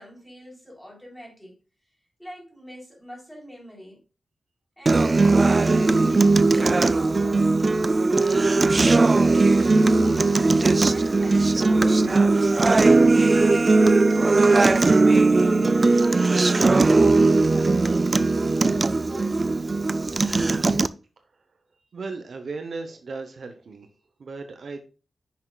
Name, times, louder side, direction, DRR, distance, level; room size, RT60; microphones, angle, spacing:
voice 1, 0.0-1.6 2.2-4.0 4.8-7.7 9.0-15.7 16.0-18.2 18.5-19.6, equal, ahead, -2 dB, 3.4 m, -42 dB
Acoustic guitar, 4.9-20.9, right 3 dB, 30° right, 0.4 m, -19 dB
voice 2, 21.9-23.9 24.2-24.8, right 3 dB, 60° right, 6 dB, 0.8 m, -36 dB
9.7 x 6.0 x 2.3 m, 0.35 s
wide cardioid pair, 120°, 0 cm